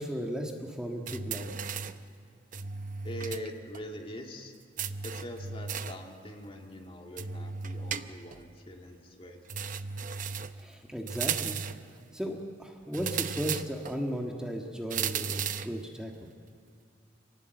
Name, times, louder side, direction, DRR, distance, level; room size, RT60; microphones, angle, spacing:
voice 1, 0.0-1.6 10.6-11.6 12.1-16.1, equal, 5° right, 1 dB, 1.7 m, -35 dB
sound 1, 1.1-2.0 2.5-3.5 3.7-3.8 4.8-6.0 7.2-8.4 9.5-10.6 11.1-11.9 12.9-14.0 14.9-15.8, right 6 dB, 45° right, 0.8 m, -35 dB
voice 2, 3.0-4.5 5.0-9.4, equal, 30° left, 2 dB, 2.3 m, -43 dB
27.5 x 19.0 x 7.9 m, 2.3 s
head